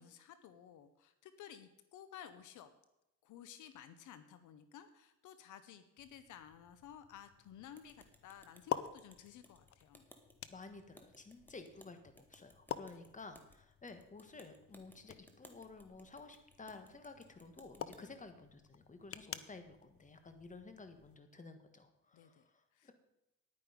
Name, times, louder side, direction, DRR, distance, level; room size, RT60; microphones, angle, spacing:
voice 1, 0.0-2.7 3.2-10.0 12.8-13.2 18.0-18.1 22.1-22.9, left 9 dB, 80° left, 11 dB, 0.9 m, -55 dB
sound 1, 6.0-21.2, left 9 dB, 50° left, 0.7 m, -49 dB
sound 2, 7.7-18.0, equal, 5° left, 1.7 m, -64 dB
voice 2, 10.5-22.9, left 3 dB, 25° left, 8 dB, 1.6 m, -53 dB
10.5 x 9.5 x 5.2 m, 0.90 s
cardioid pair, 90°, 30 cm